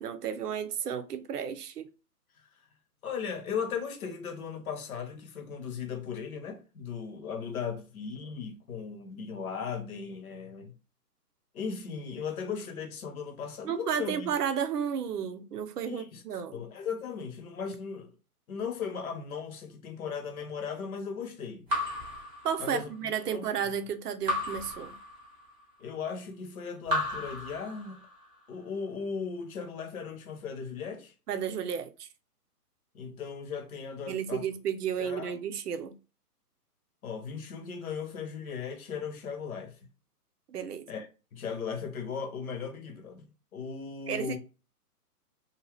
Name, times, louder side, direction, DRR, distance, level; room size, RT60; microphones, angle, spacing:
voice 1, 0.0-1.9 13.6-16.6 22.4-25.0 31.3-32.1 34.1-35.9 40.5-40.9 44.1-44.4, right 8 dB, 75° right, 0.6 m, -32 dB
voice 2, 3.0-10.7 11.5-14.3 15.9-16.2 16.5-18.1 18.5-21.6 22.6-22.9 23.3-23.5 25.8-28.1 28.5-31.1 32.9-34.5 35.0-35.4 37.0-39.8 40.9-44.4, left 6 dB, 60° left, 1.0 m, -37 dB
Raindrop / Drip, 21.7-23.1 24.3-25.6 26.8-28.3, left 1 dB, 10° right, 0.8 m, -34 dB
2.7 x 2.4 x 3.0 m
hypercardioid pair, 140°, 47 cm